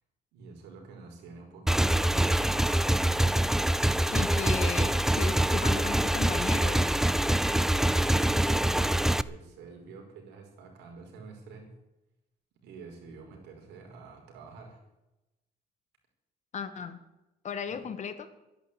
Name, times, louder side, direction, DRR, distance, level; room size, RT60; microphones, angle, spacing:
voice 1, 0.3-2.6 7.7-11.7 12.6-14.8 17.7-17.8, right 4 dB, 85° right, 2 dB, 5.1 m, -48 dB
Motorcycle / Engine, 1.7-9.2, right 1 dB, 5° right, 0.5 m, -25 dB
voice 2, 4.1-6.8 16.5-17.0 17.4-18.3, left 6 dB, 45° left, 11 dB, 1.8 m, -35 dB
13.0 x 11.0 x 8.6 m, 0.96 s
cardioid pair, 110°, 17 cm